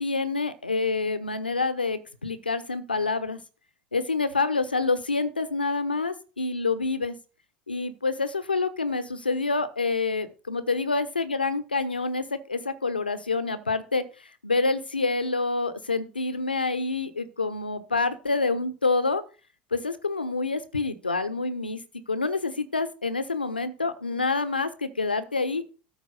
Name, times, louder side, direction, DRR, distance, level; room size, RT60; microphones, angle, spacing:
voice 1, 0.0-3.4 3.9-7.1 7.7-19.2 19.7-21.8 22.1-25.6, left 3 dB, 85° left, 12 dB, 1.0 m, -27 dB
13.0 x 4.5 x 6.4 m, 0.34 s
figure-of-eight pair, 75°, 5 cm